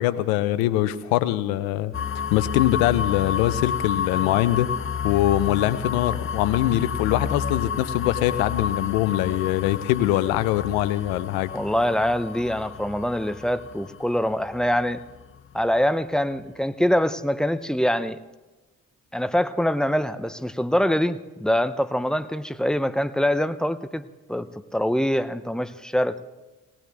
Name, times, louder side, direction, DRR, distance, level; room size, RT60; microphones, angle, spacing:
voice 1, 0.0-1.9 2.3-4.7 5.0-11.5, left 14 dB, 85° left, 14 dB, 0.7 m, -23 dB
sound 1, 1.9-15.7, left 7 dB, 35° left, 0.7 m, -31 dB
voice 2, 11.5-15.0 15.5-18.2 19.1-26.2, equal, ahead, 12 dB, 0.8 m, -24 dB
18.5 x 18.5 x 3.5 m, 1.1 s
hypercardioid pair, 40°, 36 cm